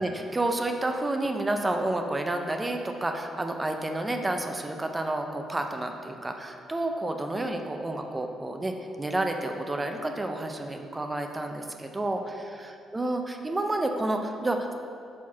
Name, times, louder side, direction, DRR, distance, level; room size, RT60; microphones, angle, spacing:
voice 1, 0.0-12.2 12.9-14.7, right 2 dB, 20° right, 4 dB, 0.5 m, -30 dB
4.6 x 4.4 x 5.8 m, 2.5 s
cardioid pair, 90°, 0 cm